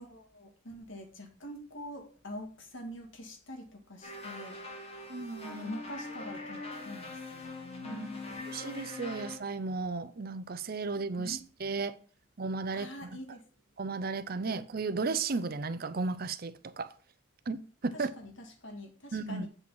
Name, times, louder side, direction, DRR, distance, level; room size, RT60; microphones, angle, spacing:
voice 1, 0.0-5.0 5.5-8.5 11.2-11.4 12.7-13.4 17.9-19.5, left 1 dB, 70° left, 2.0 m, -45 dB
sound 1, 4.0-9.4, left 2 dB, 30° left, 1.5 m, -42 dB
voice 2, 5.1-5.7 7.8-8.1 8.5-11.9 12.4-13.2 13.8-16.9 17.5-18.1 19.1-19.5, right 4 dB, 50° right, 0.6 m, -34 dB
7.9 x 5.1 x 5.5 m
head